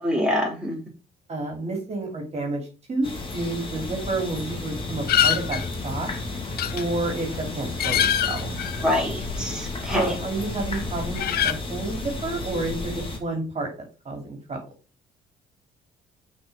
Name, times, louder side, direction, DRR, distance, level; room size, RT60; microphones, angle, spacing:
voice 1, 0.0-0.9 8.8-10.2, left 1 dB, 5° right, -2 dB, 3.4 m, -25 dB
voice 2, 1.3-2.6 2.9-5.6 5.8-6.1 6.7-8.5 9.9-11.2 11.4-13.7 14.0-14.6, right 2 dB, 40° right, 1 dB, 2.8 m, -30 dB
sound 1, 3.0-13.2, left 2 dB, 30° left, 2.4 m, -33 dB
sound 2, 5.1-10.5 10.7-11.5, left 10 dB, 65° left, 0.6 m, -26 dB
6.0 x 4.5 x 5.5 m, 0.34 s
cardioid pair, 85°, 17 cm